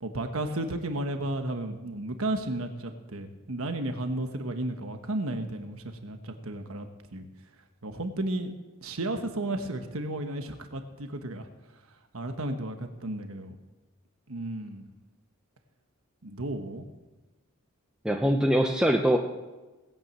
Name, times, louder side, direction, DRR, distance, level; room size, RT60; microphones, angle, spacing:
voice 1, 0.0-7.3 7.8-8.5 8.8-11.5 12.1-13.5 14.3-14.9 16.2-16.8, right 1 dB, 70° right, 6 dB, 1.2 m, -33 dB
voice 2, 18.0-19.2, equal, 5° right, 2 dB, 0.8 m, -23 dB
18.5 x 9.1 x 7.6 m, 1.2 s
head